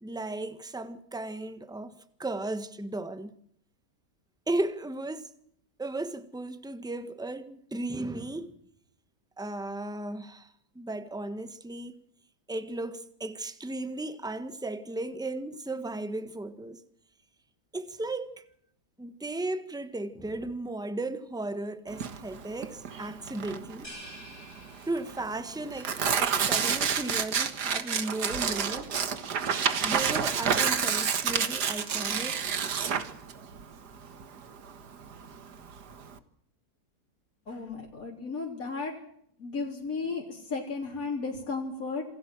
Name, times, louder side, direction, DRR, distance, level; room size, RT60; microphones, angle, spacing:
voice 1, 0.0-3.4 4.5-5.3 5.8-8.6 9.4-12.0 12.5-16.8 17.7-18.4 19.0-23.9 24.9-25.9 26.2-29.0 29.8-32.5, right 2 dB, 5° right, 1.2 m, -35 dB
Tearing, 21.9-36.2, right 7 dB, 80° right, 2.0 m, -29 dB
sound 1, 23.8-25.6, equal, 30° left, 7.6 m, -48 dB
voice 2, 37.5-38.9 39.4-42.0, left 4 dB, 60° left, 4.0 m, -34 dB
27.5 x 18.5 x 7.7 m
omnidirectional pair, 1.7 m